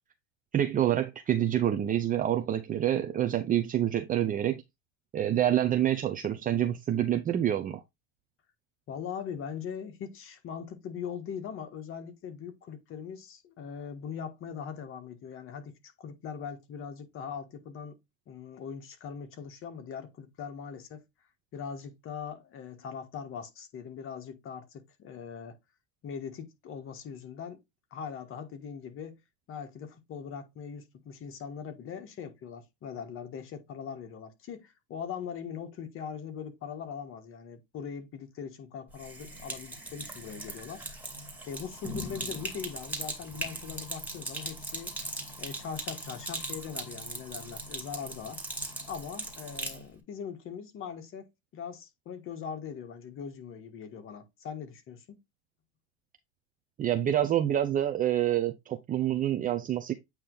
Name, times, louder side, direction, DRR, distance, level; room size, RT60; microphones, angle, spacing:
voice 1, 0.5-4.6 5.1-7.8 56.8-59.9, right 11 dB, 25° right, 0.6 m, -27 dB
voice 2, 8.9-18.0 18.3-21.0 21.5-25.6 26.0-27.6 27.9-29.2 29.5-40.8 41.5-44.9 45.4-48.4 48.9-55.0, left 7 dB, 40° left, 1.5 m, -41 dB
Sink (filling or washing), 38.9-49.8, right 1 dB, 5° right, 2.2 m, -39 dB
8.6 x 3.0 x 3.8 m
supercardioid pair, 110°, 32 cm